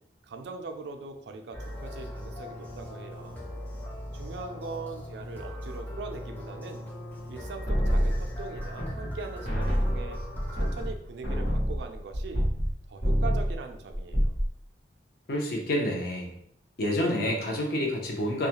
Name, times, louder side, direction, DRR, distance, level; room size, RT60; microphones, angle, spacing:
voice 1, 0.2-3.4 4.1-6.9 7.3-10.2 10.5-12.5 12.9-14.3, right 4 dB, 65° right, 5 dB, 0.3 m, -41 dB
sound 1, 1.5-10.9, left 1 dB, 10° left, 0.5 m, -40 dB
sound 2, 7.7-9.2 9.4-12.7 13.0-13.6 13.9-14.5, equal, 75° left, 1.0 m, -27 dB
voice 2, 15.3-16.3 16.8-18.5, left 1 dB, 60° left, 0 dB, 0.6 m, -28 dB
2.3 x 2.1 x 2.8 m, 0.70 s
head